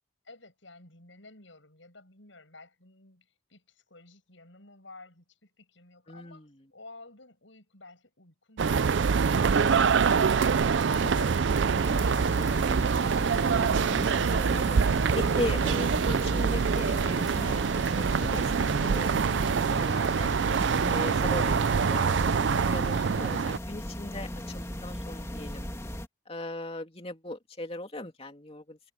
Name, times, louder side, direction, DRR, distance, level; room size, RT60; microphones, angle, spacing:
voice 1, 0.2-10.7 11.0-13.6, left 2 dB, 75° left, 7.7 m, -52 dB
voice 2, 6.1-6.5 11.0-11.3 14.3-20.3 20.9-22.1 22.6-25.7 26.3-28.8, left 1 dB, 30° left, 2.7 m, -38 dB
sound 1, 8.6-23.6, right 5 dB, 65° right, 0.4 m, -25 dB
sound 2, 11.8-26.1, equal, 15° left, 2.3 m, -38 dB
head